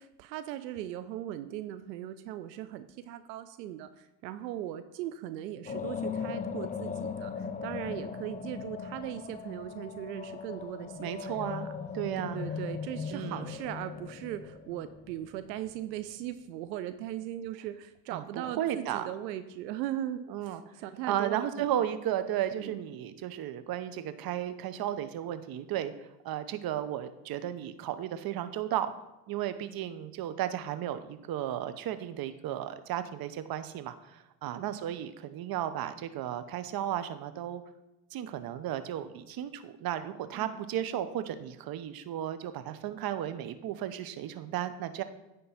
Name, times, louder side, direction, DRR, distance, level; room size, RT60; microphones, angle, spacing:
voice 1, 0.0-11.7 12.3-20.2 20.8-21.7 22.6-22.8 34.5-34.7 40.3-40.6, right 12 dB, 85° right, 11 dB, 0.6 m, -39 dB
sound 1, 5.7-15.8, left 6 dB, 20° left, 0.4 m, -38 dB
voice 2, 11.0-12.4 13.1-13.5 18.1-19.1 20.3-20.7 21.1-28.9 29.3-37.6 38.1-45.0, right 11 dB, 45° right, 11 dB, 0.8 m, -34 dB
9.6 x 3.8 x 5.5 m, 0.97 s
hypercardioid pair, 75°, 49 cm